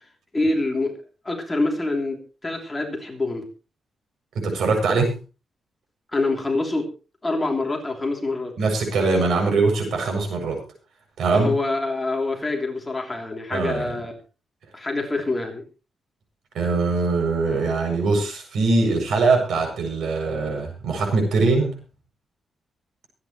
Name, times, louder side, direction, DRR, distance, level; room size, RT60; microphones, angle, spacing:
voice 1, 0.3-1.0 1.2-3.5 6.1-6.9 7.2-8.5 11.3-14.1 14.7-15.6, left 2 dB, 15° left, 1 dB, 3.2 m, -25 dB
voice 2, 4.3-5.1 8.6-10.6 11.2-11.5 13.5-13.9 16.5-21.7, right 3 dB, 75° right, 2 dB, 7.5 m, -22 dB
24.5 x 9.9 x 3.2 m, 0.33 s
wide cardioid pair, 145°, 0 cm